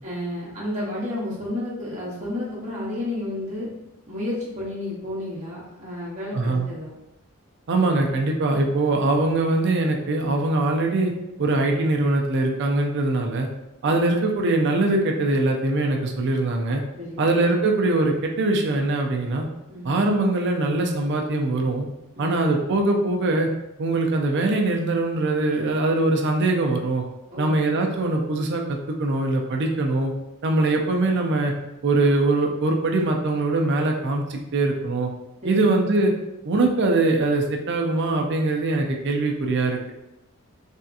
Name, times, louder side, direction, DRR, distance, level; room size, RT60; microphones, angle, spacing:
voice 1, 0.0-3.7 4.1-6.9 13.8-14.0 17.0-17.3 19.7-19.9 22.1-22.3 27.3-27.6 35.4-35.7, left 1 dB, 35° right, -7 dB, 0.9 m, -31 dB
voice 2, 6.3-6.7 7.7-11.1 11.4-13.5 13.8-16.8 17.2-19.5 19.8-21.9 22.2-23.5 23.8-27.0 27.4-30.1 30.4-31.5 31.8-35.1 35.4-36.1 36.4-39.9, right 2 dB, 50° right, 2 dB, 0.4 m, -22 dB
3.4 x 2.7 x 2.4 m, 0.92 s
head